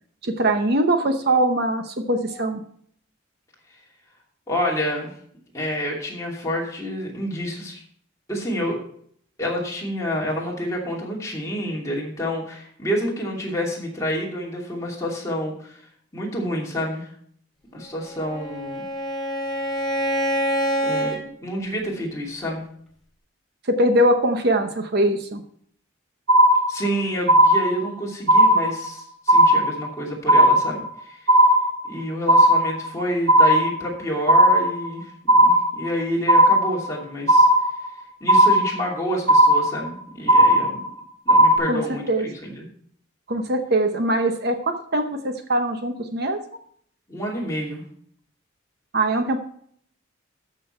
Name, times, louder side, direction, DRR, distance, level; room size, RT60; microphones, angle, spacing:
voice 1, 0.2-2.6 23.7-25.4 41.7-41.8 42.1-42.3 43.3-46.4 48.9-49.4, right 1 dB, 50° right, 7 dB, 0.8 m, -22 dB
voice 2, 4.5-5.1 5.5-7.8 8.3-8.8 9.4-15.8 16.1-17.1 17.7-18.8 20.8-22.6 26.7-31.2 31.8-37.5 38.2-40.9 41.2-42.7 47.1-47.8, equal, 15° left, -3 dB, 2.6 m, -28 dB
Bowed string instrument, 18.0-21.2, equal, ahead, 2.3 m, -26 dB
sound 1, 26.3-26.9 27.3-27.9 28.3-28.9 29.3-29.9 30.3-30.9 31.3-32.0 32.3-32.9 33.3-33.9 34.3-34.9 35.3-35.9 36.3-36.9 37.3-37.9 38.3-38.9 39.3-39.9 40.3-40.9 41.3-41.6, right 1 dB, 75° right, 4.0 m, -15 dB
13.0 x 6.1 x 4.4 m, 0.62 s
head